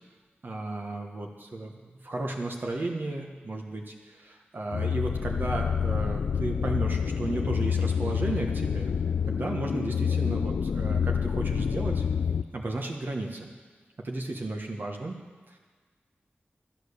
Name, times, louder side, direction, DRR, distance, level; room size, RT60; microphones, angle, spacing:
voice 1, 0.4-8.9 9.3-12.1 12.5-13.5 14.0-15.2 15.5-15.6, right 2 dB, 55° right, 1 dB, 1.2 m, -34 dB
sound 1, 4.7-12.4, left 7 dB, 90° left, 0.4 m, -28 dB
12.0 x 9.1 x 6.7 m, 1.5 s
wide cardioid pair, 90°, 4 cm